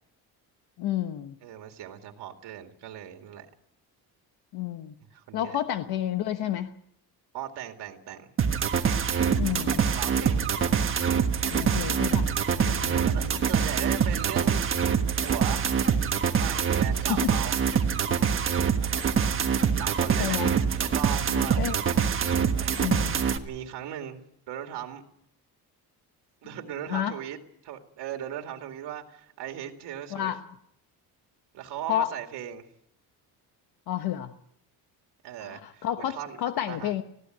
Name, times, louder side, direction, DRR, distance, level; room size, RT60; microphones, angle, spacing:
voice 1, 0.8-1.3 4.5-4.9 5.3-6.8 9.3-9.9 11.5-12.3 12.6-13.4 17.0-17.3 20.2-20.6 21.3-21.8 22.8-23.2 26.9-27.2 30.1-30.4 31.9-32.1 33.9-34.3 35.4-37.0, left 11 dB, 70° left, 8 dB, 1.2 m, -30 dB
voice 2, 1.4-3.5 5.1-5.6 7.3-8.3 9.9-10.5 12.7-14.6 15.2-15.8 16.4-17.6 19.8-20.4 20.7-21.6 22.6-24.2 24.5-25.0 26.4-27.4 27.6-30.3 31.5-32.7 35.2-36.4 36.7-36.9, right 11 dB, 85° right, 5 dB, 2.4 m, -38 dB
sound 1, 8.4-23.4, right 7 dB, 30° right, 1.4 m, -25 dB
21.0 x 16.0 x 9.4 m, 0.73 s
cardioid pair, 170°, 39 cm